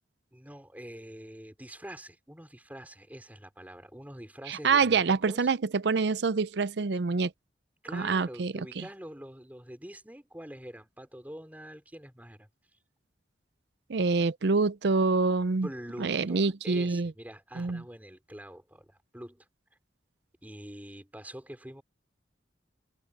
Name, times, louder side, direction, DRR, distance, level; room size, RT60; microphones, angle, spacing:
voice 1, 0.3-5.5 7.8-12.5 15.6-19.5 20.4-21.8, equal, 10° right, 4.4 m, -45 dB
voice 2, 4.5-7.3 7.9-8.8 13.9-15.7 16.0-17.1 17.6-17.8, right 4 dB, 65° right, 0.5 m, -26 dB
head